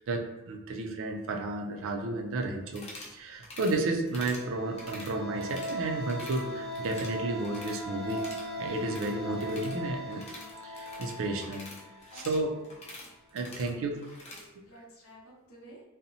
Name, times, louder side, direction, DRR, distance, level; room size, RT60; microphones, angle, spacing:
voice 1, 0.0-2.8 3.1-8.2 8.6-10.2 10.6-11.7 12.1-12.5 13.3-14.0 14.4-14.5, right 2 dB, 60° right, 3 dB, 0.4 m, -32 dB
sound 1, 2.7-3.1 3.4-3.8 4.1-4.4 4.7-5.8 6.0-6.4 6.7-7.8 8.1-14.5, left 2 dB, 30° left, 0.5 m, -47 dB
sound 2, 4.2-12.8, equal, 25° right, 0.7 m, -39 dB
voice 2, 12.1-12.8 13.1-13.2 13.6-14.0 14.7-15.8, equal, 70° left, -3 dB, 0.7 m, -53 dB
2.7 x 2.0 x 2.6 m, 1.0 s
head